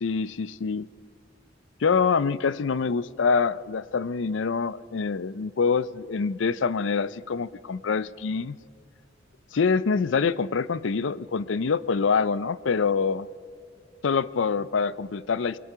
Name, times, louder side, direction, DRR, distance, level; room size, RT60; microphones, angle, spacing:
voice 1, 0.0-0.9 1.8-8.6 9.5-13.3 14.0-15.6, left 5 dB, 70° left, 18 dB, 0.5 m, -25 dB
22.0 x 21.5 x 5.6 m, 2.3 s
head